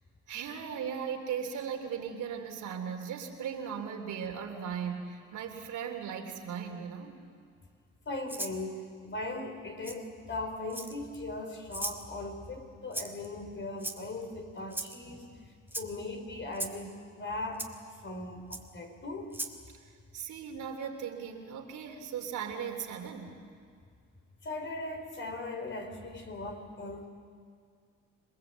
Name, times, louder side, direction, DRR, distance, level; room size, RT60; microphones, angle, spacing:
voice 1, 0.3-7.2 19.8-23.4, right 7 dB, 80° right, 3 dB, 3.4 m, -38 dB
voice 2, 8.1-15.3 15.7-17.7 18.0-19.4 24.4-27.1, left 2 dB, 40° left, 4 dB, 4.6 m, -39 dB
Rattle (instrument), 8.3-8.6 9.8-10.0 10.7-11.1 11.7-12.0 12.9-13.3 13.8-14.2 14.7-15.0 15.7-15.9 16.5-16.8 17.6-17.7 18.5-18.6 19.3-19.6, right 1 dB, 5° right, 2.2 m, -37 dB
27.0 x 21.0 x 8.2 m, 2.2 s
cardioid pair, 90°, 30 cm